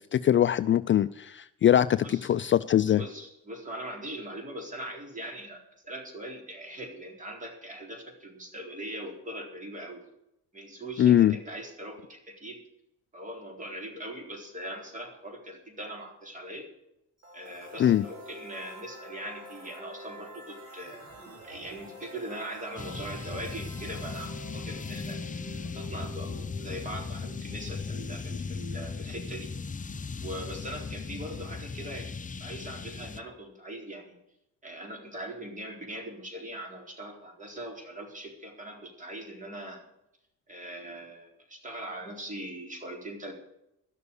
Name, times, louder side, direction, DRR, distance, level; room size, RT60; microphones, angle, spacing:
voice 1, 0.1-3.0 11.0-11.4 17.8-18.0, left 11 dB, 40° left, 14 dB, 0.4 m, -22 dB
voice 2, 3.0-10.0 10.5-12.6 13.1-16.7 17.3-21.1 21.4-25.2 25.7-29.5 30.2-34.2 34.6-39.8 40.5-43.3, right 1 dB, 25° right, 2 dB, 4.0 m, -41 dB
sound 1, 17.2-29.0, equal, 55° right, 5.4 m, -48 dB
sound 2, 22.8-33.2, left 4 dB, 25° left, 0.8 m, -37 dB
12.0 x 6.9 x 9.8 m, 0.84 s
cardioid pair, 90°, 30 cm